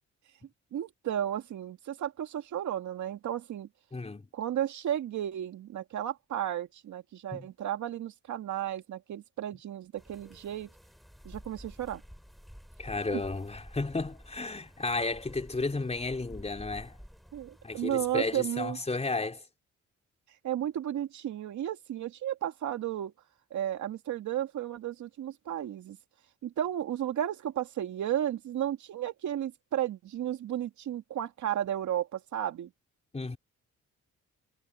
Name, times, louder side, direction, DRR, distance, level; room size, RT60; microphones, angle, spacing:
voice 1, 0.7-3.7 4.3-10.7 11.2-12.0 17.3-18.8 20.4-23.1 23.5-26.0 26.4-32.7, right 11 dB, 70° right, 2.2 m, -33 dB
voice 2, 3.9-4.3 7.3-7.5 12.8-17.0 17.6-19.4 33.1-33.4, left 3 dB, 20° left, 4.5 m, -33 dB
sound 1, 10.0-18.4, equal, ahead, 7.9 m, -51 dB
cardioid pair, 90°, 30 cm